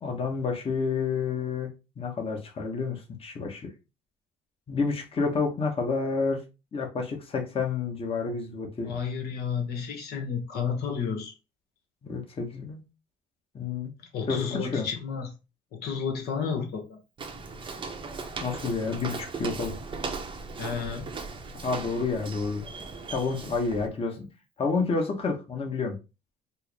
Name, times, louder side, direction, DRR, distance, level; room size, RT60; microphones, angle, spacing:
voice 1, 0.0-1.7 2.0-3.7 4.7-6.4 6.7-8.9 12.0-12.8 13.5-13.9 14.3-14.8 18.4-19.7 21.6-22.6 23.1-24.3 24.6-25.9, left 4 dB, 35° left, 1.1 m, -29 dB
voice 2, 8.8-11.3 14.1-15.3 15.7-17.0 20.6-21.1, left 6 dB, 70° left, 1.0 m, -31 dB
Walk footsteps, 17.2-23.9, right 4 dB, 30° right, 0.7 m, -38 dB
4.4 x 2.0 x 3.3 m
cardioid pair, 110°, 17 cm